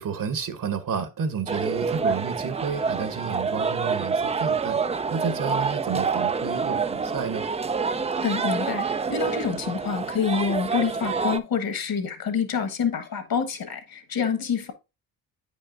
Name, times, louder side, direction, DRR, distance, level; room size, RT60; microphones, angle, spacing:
voice 1, 0.0-4.8 5.1-7.5, right 6 dB, 45° right, 1.1 m, -30 dB
sound 1, 1.5-11.4, right 5 dB, 15° right, 0.4 m, -27 dB
voice 2, 8.2-14.7, left 6 dB, 50° left, 1.5 m, -27 dB
8.7 x 5.2 x 2.5 m
supercardioid pair, 60°, 45 cm